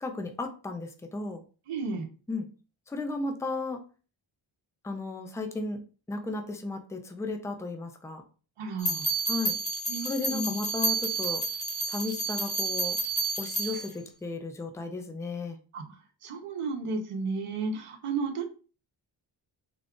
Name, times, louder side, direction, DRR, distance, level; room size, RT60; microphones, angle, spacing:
voice 1, 0.0-1.4 2.3-2.5 2.9-3.8 4.8-5.8 6.1-8.2 9.3-9.6 10.0-11.5 11.9-13.0 13.4-15.6, left 3 dB, 5° left, 5 dB, 0.3 m, -34 dB
voice 2, 1.7-2.1 8.6-9.1 9.9-10.5 15.7-18.4, right 4 dB, 85° right, 3 dB, 0.9 m, -33 dB
sound 1, 8.8-13.9, right 2 dB, 35° left, 1.1 m, -30 dB
3.8 x 2.3 x 3.6 m, 0.36 s
wide cardioid pair, 175°, 50 cm